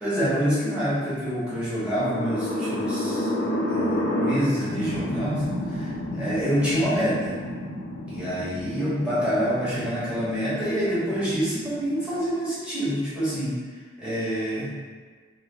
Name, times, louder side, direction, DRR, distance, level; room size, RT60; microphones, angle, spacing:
voice 1, 0.0-3.3 3.7-5.9 6.2-7.3 8.1-13.5 14.0-14.7, equal, 5° right, -11 dB, 1.2 m, -26 dB
sound 1, 2.0-12.3, left 1 dB, 75° left, 0.5 m, -30 dB
3.4 x 2.1 x 3.6 m, 1.5 s
head